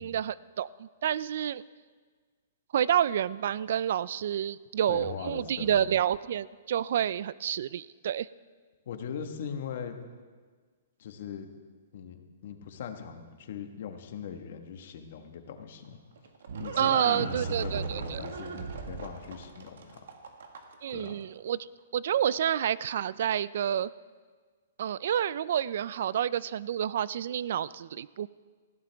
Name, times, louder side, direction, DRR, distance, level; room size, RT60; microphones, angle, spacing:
voice 1, 0.0-1.6 2.7-8.3 16.8-18.2 20.8-21.7 21.9-23.9 24.8-28.3, right 10 dB, 55° right, 20 dB, 0.3 m, -29 dB
voice 2, 4.9-5.9 8.9-10.0 11.0-11.5 11.9-16.0 16.6-20.1 20.9-21.2, left 7 dB, 55° left, 6 dB, 1.4 m, -40 dB
Livestock farm animals working animals, 15.8-20.9, right 4 dB, 75° right, 1.7 m, -37 dB
19.5 x 15.5 x 3.5 m, 1.5 s
hypercardioid pair, 170°, 0 cm